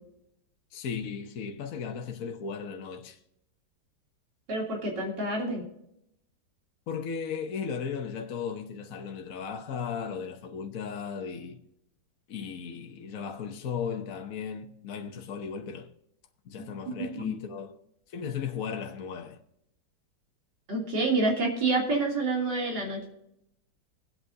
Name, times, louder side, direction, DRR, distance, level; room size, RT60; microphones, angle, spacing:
voice 1, 0.7-3.2 6.9-11.6 12.3-15.9 16.4-17.8 18.1-19.4, left 6 dB, 55° left, 1.3 m, -36 dB
voice 2, 4.5-5.6 16.9-17.3 20.7-23.1, right 3 dB, 75° right, 3.6 m, -28 dB
22.0 x 8.7 x 2.7 m
omnidirectional pair, 1.9 m